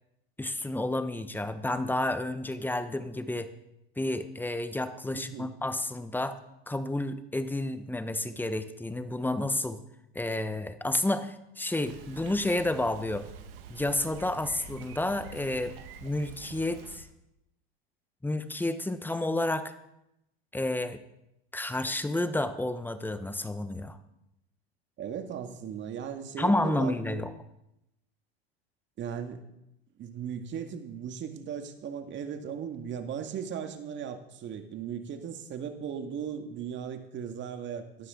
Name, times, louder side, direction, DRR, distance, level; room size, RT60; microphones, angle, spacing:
voice 1, 0.4-3.5 4.0-6.4 6.7-9.8 10.1-13.3 13.7-15.7 16.0-17.1 18.2-19.7 20.5-21.0 21.5-24.0 26.4-27.3, left 1 dB, 5° left, 11 dB, 1.1 m, -30 dB
voice 2, 5.1-5.5 25.0-27.2 29.0-29.4 30.0-38.1, right 8 dB, 40° right, 6 dB, 2.0 m, -37 dB
Bicycle, 11.8-17.0, right 5 dB, 65° right, 1.9 m, -46 dB
18.0 x 12.5 x 3.9 m, 0.85 s
hypercardioid pair, 95°, 31 cm